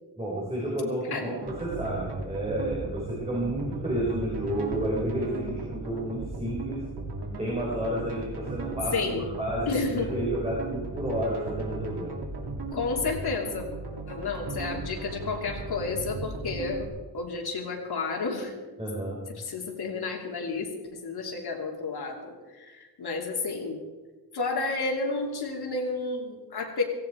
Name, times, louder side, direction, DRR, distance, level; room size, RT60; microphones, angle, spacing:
voice 1, 0.2-6.8 7.4-12.1 18.8-19.2, right 1 dB, 15° right, -5 dB, 3.8 m, -31 dB
sound 1, 1.4-16.9, right 3 dB, 85° right, 2.7 m, -37 dB
voice 2, 8.9-9.3 9.7-10.2 12.7-13.7 14.1-16.9 17.1-18.5 19.4-20.7 21.0-23.8 24.3-26.8, left 3 dB, 75° left, 1 dB, 2.9 m, -31 dB
17.0 x 16.0 x 4.6 m, 1.3 s
wide cardioid pair, 175°, 39 cm